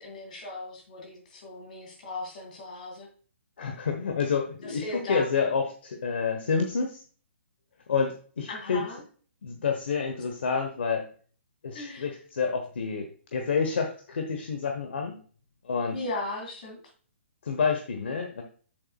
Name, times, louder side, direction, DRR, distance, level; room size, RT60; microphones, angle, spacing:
voice 1, 0.0-3.1 4.6-5.3 8.5-9.0 11.7-12.1 15.9-16.8, left 2 dB, 35° left, 2 dB, 2.4 m, -37 dB
voice 2, 3.6-7.0 7.9-8.8 9.4-11.1 11.6-15.2 15.6-16.0 17.4-18.4, left 5 dB, 55° left, 4 dB, 1.0 m, -29 dB
8.1 x 7.0 x 2.3 m, 0.43 s
hypercardioid pair, 180°, 7 cm